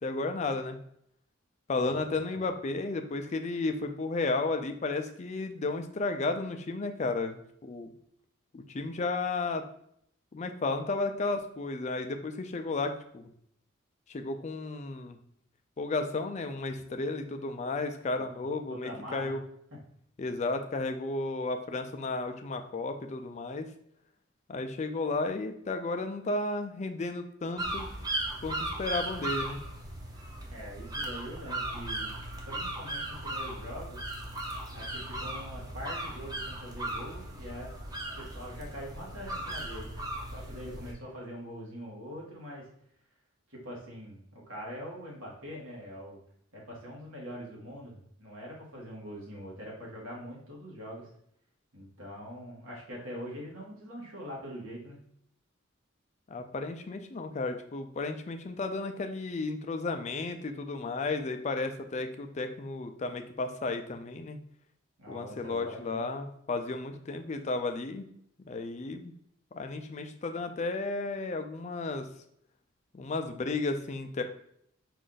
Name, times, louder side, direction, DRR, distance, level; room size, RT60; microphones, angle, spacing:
voice 1, 0.0-0.8 1.7-7.9 8.5-9.6 10.3-13.3 14.1-15.2 15.8-19.4 20.2-23.7 24.5-27.9 28.4-29.6 56.3-64.4 65.1-68.1 68.5-69.1 69.5-72.1 72.9-74.2, left 3 dB, 35° left, 7 dB, 0.4 m, -33 dB
voice 2, 1.8-2.5 18.1-19.3 30.5-32.2 32.4-34.0 34.7-37.7 38.2-39.9 40.3-42.7 43.5-46.2 46.5-51.1 51.7-55.0 65.0-66.1, equal, 90° right, -3 dB, 1.6 m, -43 dB
sound 1, 27.6-40.9, right 1 dB, 20° right, 0.6 m, -37 dB
5.0 x 2.5 x 3.8 m, 0.69 s
head